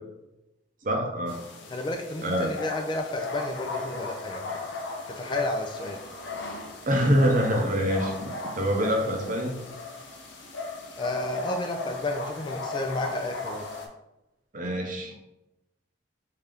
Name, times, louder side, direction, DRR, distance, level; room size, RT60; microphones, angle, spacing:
voice 1, 0.8-1.4 2.2-2.5 6.9-8.1 8.6-9.6 14.5-15.1, equal, 45° right, 1 dB, 0.6 m, -25 dB
sound 1, 1.3-13.9, left 3 dB, 80° left, 0.7 m, -37 dB
voice 2, 1.7-4.4 5.1-6.0 10.9-13.6, left 2 dB, 25° left, 4 dB, 0.3 m, -31 dB
3.7 x 2.7 x 3.4 m, 0.91 s
head